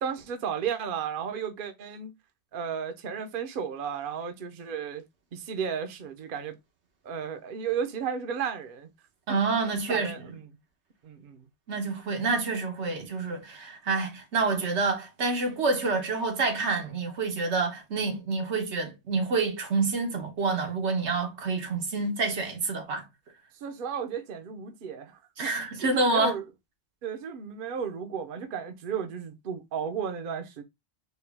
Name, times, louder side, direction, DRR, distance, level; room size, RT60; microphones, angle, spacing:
voice 1, 0.0-2.1 2.5-5.0 5.3-6.6 7.0-8.9 9.3-9.4 9.9-10.5 11.0-11.4 23.6-25.5 25.8-26.4 27.0-30.6, right 7 dB, 55° right, 0.8 m, -34 dB
voice 2, 9.3-10.1 11.7-23.1 25.4-26.3, right 3 dB, 90° right, 1.3 m, -28 dB
4.4 x 2.3 x 3.3 m
omnidirectional pair, 1.1 m